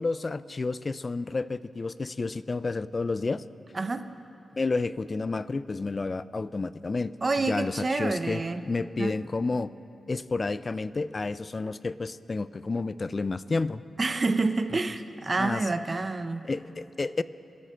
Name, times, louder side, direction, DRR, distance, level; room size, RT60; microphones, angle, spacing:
voice 1, 0.0-3.4 4.6-7.1 7.5-9.7 10.1-13.8 15.4-15.6 16.4-17.2, left 3 dB, 35° left, 16 dB, 0.4 m, -30 dB
voice 2, 3.7-4.0 7.2-8.6 9.0-9.1 14.0-16.4, right 3 dB, 35° right, 10 dB, 0.6 m, -28 dB
25.0 x 11.5 x 4.4 m, 2.9 s
wide cardioid pair, 105°, 0 cm